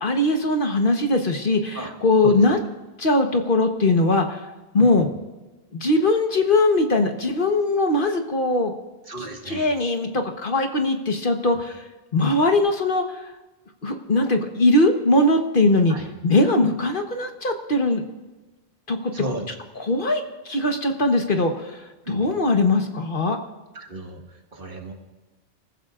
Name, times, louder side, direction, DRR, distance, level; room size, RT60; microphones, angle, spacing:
voice 1, 0.0-2.6 3.0-4.5 4.7-5.1 5.7-8.7 9.2-11.8 12.1-13.2 13.8-18.0 18.9-19.1 19.8-23.4, left 2 dB, 55° left, 4 dB, 1.4 m, -21 dB
voice 2, 9.1-9.7 15.9-16.1 19.1-19.5 22.1-22.3 23.8-24.2 24.5-24.9, right 1 dB, 55° right, 1 dB, 2.1 m, -33 dB
28.5 x 15.0 x 2.5 m, 1.1 s
omnidirectional pair, 1.1 m